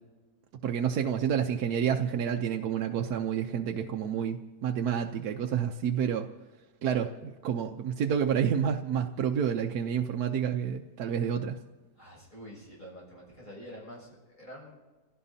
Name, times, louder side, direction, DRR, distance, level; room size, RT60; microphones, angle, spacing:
voice 1, 0.6-6.3 6.8-11.5, right 8 dB, 70° right, 3 dB, 1.1 m, -29 dB
voice 2, 12.0-14.8, equal, 25° left, -4 dB, 6.8 m, -47 dB
28.0 x 17.0 x 2.7 m, 1.2 s
omnidirectional pair, 1.8 m